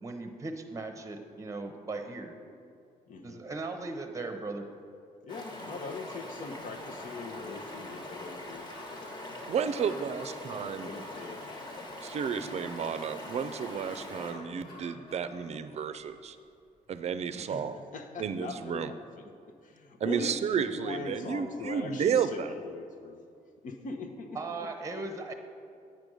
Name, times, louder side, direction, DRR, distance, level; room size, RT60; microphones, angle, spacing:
voice 1, 0.0-2.3 3.2-4.7 24.4-25.3, right 3 dB, 20° right, 6 dB, 0.8 m, -38 dB
voice 2, 3.1-3.4 5.2-9.3 10.6-11.8 17.3-19.3 19.6-23.2 23.6-25.3, left 3 dB, 65° left, 5 dB, 1.0 m, -42 dB
Stream, 5.3-14.3, left 1 dB, 30° left, 1.4 m, -43 dB
sound 1, 6.7-17.1, left 2 dB, 90° left, 1.6 m, -53 dB
voice 3, 9.5-10.8 12.0-16.4 16.9-17.7 18.2-18.9 20.0-22.5, right 7 dB, 50° right, 11 dB, 0.5 m, -32 dB
9.0 x 5.2 x 6.3 m, 2.3 s
cardioid pair, 110°, 15 cm